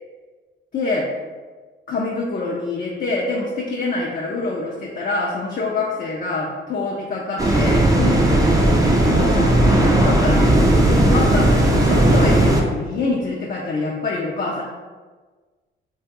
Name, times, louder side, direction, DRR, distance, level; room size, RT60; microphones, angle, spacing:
voice 1, 0.7-1.1 1.9-8.2 9.1-14.6, left 3 dB, 45° left, -3 dB, 0.5 m, -25 dB
sound 1, 7.4-12.6, right 1 dB, 15° right, 0.5 m, -16 dB
3.0 x 2.3 x 2.9 m, 1.4 s
cardioid pair, 90°, 20 cm